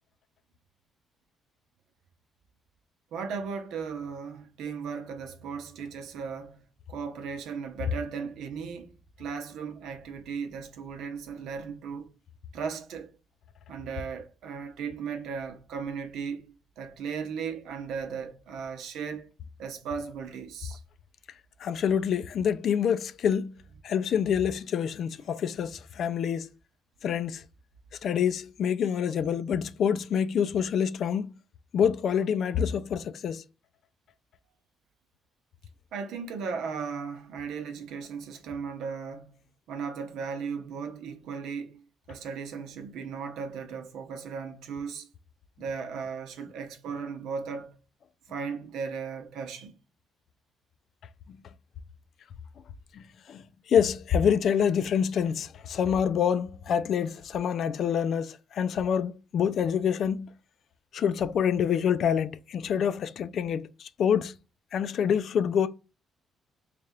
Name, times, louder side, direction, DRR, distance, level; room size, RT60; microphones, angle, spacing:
voice 1, 3.1-8.9 9.2-12.1 12.5-13.1 13.7-19.3 19.6-20.8 35.9-45.1 45.6-47.8 48.3-49.8, right 6 dB, 85° right, 0.7 m, -36 dB
voice 2, 21.6-23.6 23.8-26.5 27.0-27.4 28.0-31.4 31.7-33.4 51.3-51.4 52.9-60.3 60.9-64.4 64.7-65.7, left 8 dB, 65° left, 0.4 m, -27 dB
3.3 x 2.5 x 4.2 m
cardioid pair, 90°, 0 cm